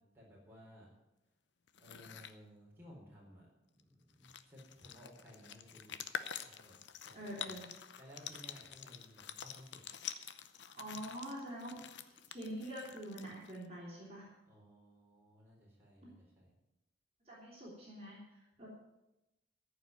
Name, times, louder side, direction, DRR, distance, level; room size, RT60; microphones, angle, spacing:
voice 1, 0.1-0.9 1.8-6.0 6.4-7.6 8.0-9.8 14.5-16.6, equal, 10° right, -4 dB, 3.9 m, -58 dB
sound 1, 1.7-2.4 3.8-3.9 4.1-13.7, left 8 dB, 85° left, 0.7 m, -47 dB
voice 2, 7.1-7.7 10.7-11.8 12.3-14.3 17.2-18.2 18.6-18.7, equal, 35° right, -5 dB, 3.4 m, -45 dB
14.0 x 5.7 x 9.3 m, 0.95 s
head